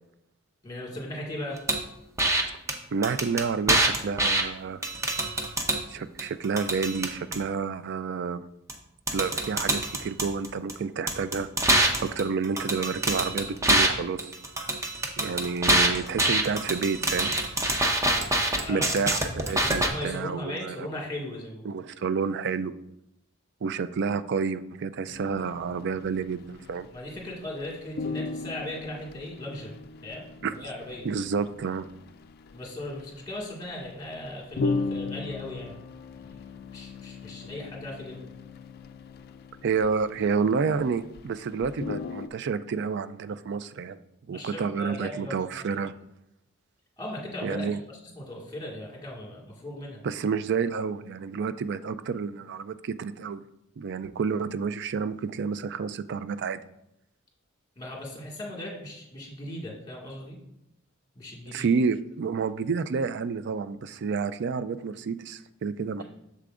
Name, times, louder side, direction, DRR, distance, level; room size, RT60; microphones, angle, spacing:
voice 1, 0.6-1.6 18.6-18.9 19.4-21.7 26.9-29.8 30.0-31.1 32.5-35.7 36.2-36.5 36.7-38.2 44.3-45.4 47.0-47.7 48.2-50.0 57.8-60.4 61.2-61.7, left 1 dB, 20° left, -3 dB, 1.9 m, -38 dB
sound 1, 1.7-1.8 2.2-2.4 2.7-2.8 3.0-4.4 4.8-5.8 6.2-7.4 8.7-8.8 9.1-10.7 11.1-13.9 14.2-19.9, right 1 dB, 15° right, 0.7 m, -25 dB
voice 2, 2.9-4.8 5.9-8.4 9.1-11.5 12.0-14.2 15.2-17.3 18.7-20.9 21.7-22.7 23.6-26.9 30.4-30.5 31.0-31.9 39.6-44.0 44.3-45.9 47.4-47.8 50.0-53.4 53.8-56.6 61.5-66.0, right 5 dB, 55° right, 13 dB, 0.4 m, -29 dB
sound 2, 25.1-27.3 27.6-27.7 28.0-41.2 41.5-42.3, left 4 dB, 50° left, 0.4 m, -37 dB
8.2 x 6.8 x 2.5 m, 0.82 s
head